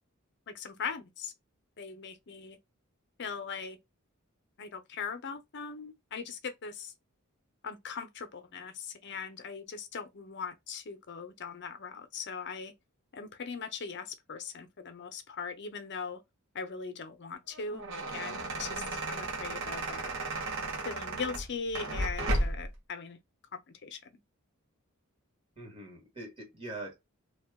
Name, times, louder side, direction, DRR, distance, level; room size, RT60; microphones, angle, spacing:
voice 1, 0.5-1.3 1.8-2.6 3.2-3.8 4.6-6.9 7.6-12.7 13.1-16.2 16.5-20.1 20.8-23.2 23.5-24.2, left 5 dB, 55° left, 0.6 m, -40 dB
sound 1, 17.5-22.7, right 2 dB, 65° right, 1.1 m, -34 dB
voice 2, 25.5-27.0, right 2 dB, 25° right, 1.7 m, -43 dB
2.9 x 2.4 x 3.5 m
head